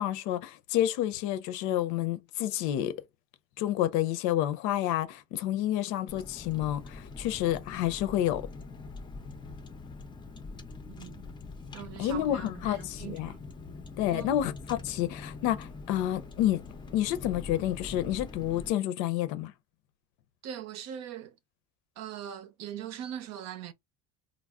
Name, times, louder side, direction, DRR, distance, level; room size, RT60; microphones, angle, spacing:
voice 1, 0.0-3.0 3.6-8.5 12.0-13.3 14.0-16.6 16.9-19.5, left 12 dB, 75° left, 0.6 m, -29 dB
Car, 6.1-18.7, left 3 dB, 15° left, 0.5 m, -44 dB
voice 2, 10.9-11.2 11.7-13.4 14.1-14.4 20.4-21.3 22.0-23.7, right 10 dB, 60° right, 0.7 m, -41 dB
2.3 x 2.0 x 3.5 m
cardioid pair, 140°, 30 cm